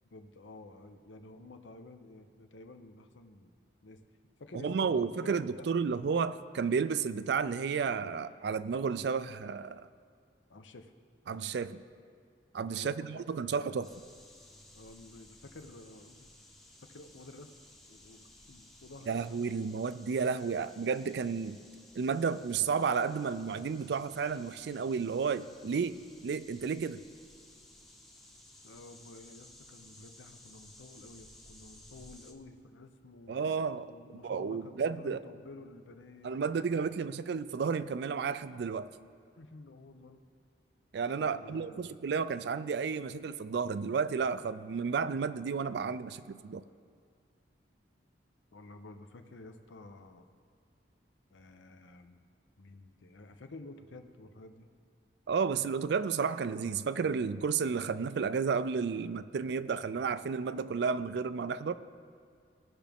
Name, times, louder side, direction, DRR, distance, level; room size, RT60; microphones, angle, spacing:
voice 1, 0.1-3.5 3.8-4.0 4.4-5.7 10.5-10.9 12.7-13.2 13.5-13.8 14.7-16.3 16.8-17.5 17.9-19.2 28.6-33.4 33.9-37.1 39.4-40.2 41.1-41.9 48.5-50.3 51.3-52.2 52.6-54.7, left 2 dB, 90° left, 7 dB, 0.7 m, -51 dB
voice 2, 4.5-9.8 11.3-11.8 12.5-13.9 19.1-21.6 22.0-27.0 33.3-33.9 34.2-35.2 36.2-38.9 40.9-46.6 55.3-61.8, right 5 dB, 65° right, 14 dB, 0.3 m, -32 dB
sound 1, 13.8-32.3, left 1 dB, ahead, 0.7 m, -57 dB
18.0 x 6.0 x 3.5 m, 2.2 s
head